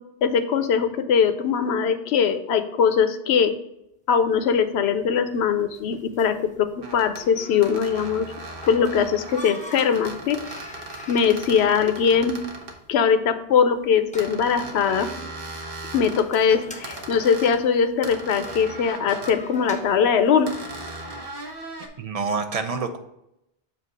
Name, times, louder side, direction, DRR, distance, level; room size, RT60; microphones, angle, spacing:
voice 1, 0.2-3.5 4.1-8.3 8.7-10.4 11.1-12.4 12.9-15.1 15.9-20.6, left 7 dB, 85° left, 10 dB, 0.9 m, -21 dB
sound 1, 4.2-21.4, left 1 dB, 10° left, 0.8 m, -45 dB
sound 2, 5.9-6.0 6.8-7.3 7.6-12.8 14.2-16.3 16.8-17.6 18.0-19.4 20.5-21.9, right 2 dB, 60° right, 1.1 m, -38 dB
voice 2, 22.0-23.0, right 4 dB, 45° right, 6 dB, 0.6 m, -27 dB
7.7 x 2.8 x 5.9 m, 0.84 s
omnidirectional pair, 1.1 m